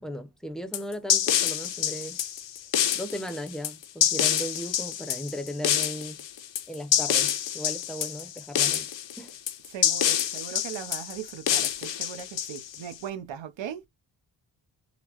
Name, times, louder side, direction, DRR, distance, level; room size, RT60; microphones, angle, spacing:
voice 1, 0.0-2.2 2.9-6.2 6.7-8.9 9.2-9.3, equal, ahead, 0.6 m, -37 dB
sound 1, 0.7-12.9, left 10 dB, 75° left, 0.7 m, -27 dB
voice 2, 9.7-13.8, right 9 dB, 80° right, 0.8 m, -38 dB
4.1 x 2.1 x 2.9 m
wide cardioid pair, 115°, 44 cm